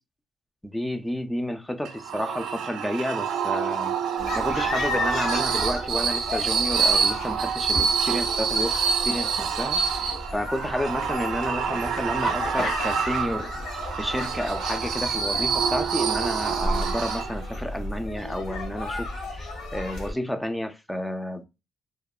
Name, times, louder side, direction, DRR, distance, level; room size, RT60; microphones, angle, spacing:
voice 1, 0.6-3.9 4.4-8.8 9.1-13.5 14.0-21.5, left 1 dB, 5° left, 0.3 m, -31 dB
sound 1, 1.8-17.6, right 7 dB, 90° right, 0.3 m, -27 dB
sound 2, 4.2-20.1, left 2 dB, 85° left, 1.1 m, -33 dB
2.9 x 2.0 x 2.3 m
cardioid pair, 125°, 0 cm